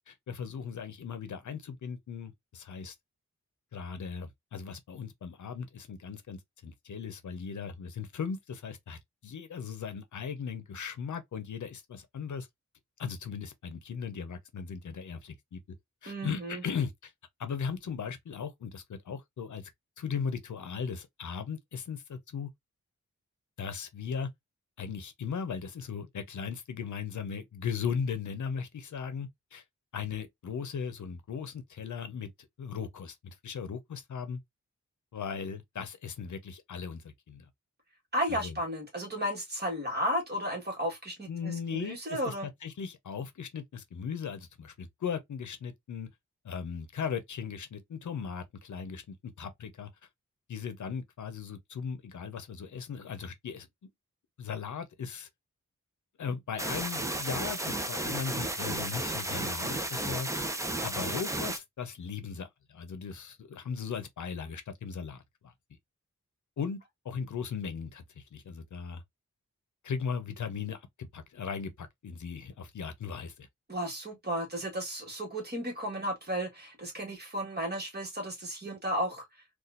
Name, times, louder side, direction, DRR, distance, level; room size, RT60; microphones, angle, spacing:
voice 1, 0.1-2.9 3.7-12.5 13.0-15.6 16.0-17.1 17.4-19.7 20.0-22.5 23.6-24.3 24.8-29.6 29.9-34.4 35.1-37.5 38.3-38.6 41.3-46.1 46.4-49.9 50.5-53.7 54.4-55.3 56.2-60.3 60.8-65.5 66.6-69.0 69.8-73.5, left 6 dB, 80° left, 0.8 m, -38 dB
voice 2, 16.1-16.6 38.1-42.5 73.7-79.2, equal, 35° right, 1.6 m, -34 dB
sound 1, 56.6-61.6, right 1 dB, 10° right, 0.6 m, -33 dB
4.1 x 2.5 x 2.5 m
wide cardioid pair, 145°, 29 cm